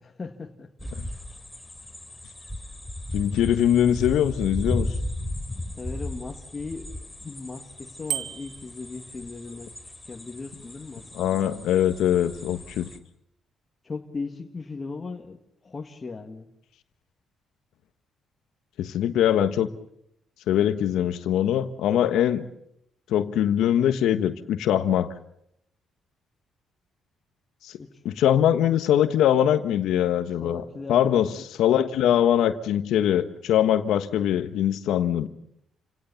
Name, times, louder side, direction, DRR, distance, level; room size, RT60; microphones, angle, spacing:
voice 1, 0.0-0.9 5.7-9.7 10.0-11.7 13.8-16.5 27.8-28.0 30.4-31.5, left 4 dB, 30° left, 2 dB, 2.0 m, -38 dB
sound 1, 0.8-13.0, left 1 dB, 5° left, 3.3 m, -35 dB
voice 2, 3.1-4.9 11.1-12.9 18.8-19.7 20.5-22.5 23.1-25.1 28.0-30.6 30.9-31.3 31.6-35.3, left 10 dB, 85° left, 10 dB, 1.4 m, -22 dB
Bicycle bell, 8.1-8.7, right 11 dB, 75° right, 1.4 m, -31 dB
29.0 x 17.5 x 7.2 m, 0.77 s
cardioid pair, 90°, 0 cm